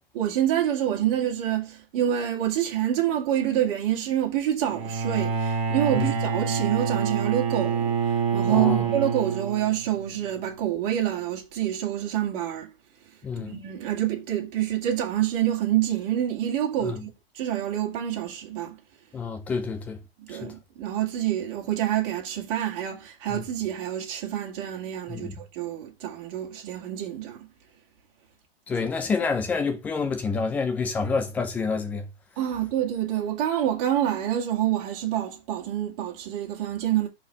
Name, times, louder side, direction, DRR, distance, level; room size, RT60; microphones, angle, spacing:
voice 1, 0.1-12.7 13.4-17.1 17.3-18.8 20.3-27.5 28.8-28.9 32.4-37.1, right 11 dB, 35° right, 2.3 m, -27 dB
Bowed string instrument, 4.7-10.0, right 6 dB, 20° right, 1.4 m, -27 dB
voice 2, 8.5-8.9 13.2-13.6 16.8-17.0 19.1-20.0 20.4-20.5 23.3-23.4 25.1-25.3 28.7-32.1, left 4 dB, 5° left, 0.4 m, -28 dB
5.5 x 4.3 x 4.8 m
hypercardioid pair, 150°, 30 cm